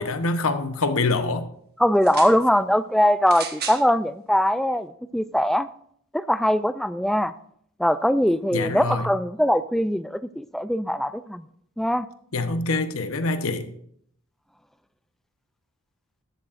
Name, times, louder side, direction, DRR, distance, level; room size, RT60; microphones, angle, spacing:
voice 1, 0.0-1.5 8.5-9.1 12.3-13.7, left 3 dB, 70° left, 9 dB, 1.0 m, -25 dB
voice 2, 1.8-5.7 6.1-7.3 7.8-11.4 11.8-12.1, equal, ahead, 13 dB, 0.3 m, -21 dB
sound 1, 1.9-2.4 3.3-3.9 4.7-4.8, right 7 dB, 45° right, 1.4 m, -34 dB
13.5 x 12.5 x 2.5 m, 0.67 s
head